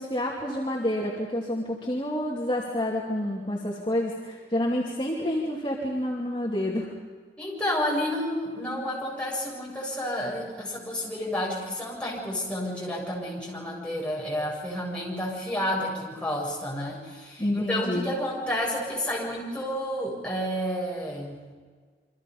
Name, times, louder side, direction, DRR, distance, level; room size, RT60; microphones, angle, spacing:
voice 1, 0.0-6.9 17.4-18.1, left 1 dB, 30° left, -4 dB, 2.7 m, -28 dB
voice 2, 7.4-21.4, left 1 dB, 5° left, -4 dB, 7.4 m, -30 dB
28.5 x 25.0 x 5.5 m, 1.5 s
head